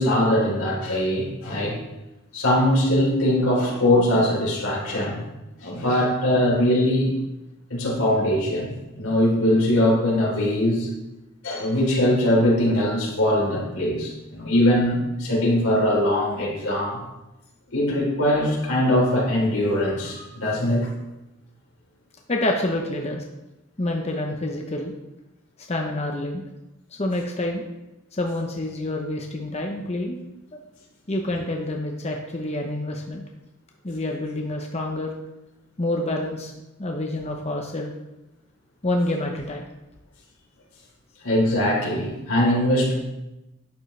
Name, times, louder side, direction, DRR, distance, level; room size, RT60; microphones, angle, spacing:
voice 1, 0.0-1.8 2.3-5.2 5.6-7.2 7.7-8.7 9.0-10.9 11.4-17.0 17.7-20.9 41.2-42.9, left 1 dB, 90° left, -3 dB, 3.6 m, -21 dB
voice 2, 22.3-23.2 23.8-24.9 25.7-26.4 26.9-27.7 28.1-30.2 31.1-33.2 33.8-35.1 35.8-36.5 36.8-37.9 38.8-39.6, left 1 dB, 30° left, 2 dB, 0.9 m, -27 dB
11.5 x 9.3 x 3.3 m, 0.98 s
head